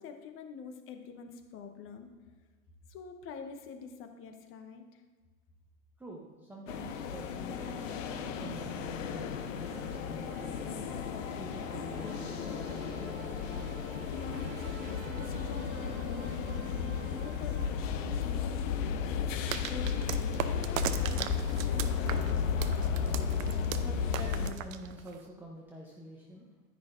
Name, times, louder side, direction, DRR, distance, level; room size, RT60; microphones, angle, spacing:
voice 1, 0.0-2.1 2.9-5.0 14.1-19.4 19.7-21.2 21.5-22.4, left 5 dB, 30° left, 6 dB, 1.0 m, -46 dB
voice 2, 6.0-7.9 8.4-10.9 11.4-13.5 23.7-26.5, right 1 dB, 5° right, -3 dB, 0.7 m, -47 dB
sound 1, 6.7-24.5, left 6 dB, 60° left, 0.8 m, -34 dB
sound 2, 7.6-18.8, right 8 dB, 45° right, 1.1 m, -52 dB
sound 3, 19.5-25.3, right 11 dB, 65° right, 0.7 m, -38 dB
10.0 x 9.9 x 2.6 m, 1.4 s
hypercardioid pair, 115°, 44 cm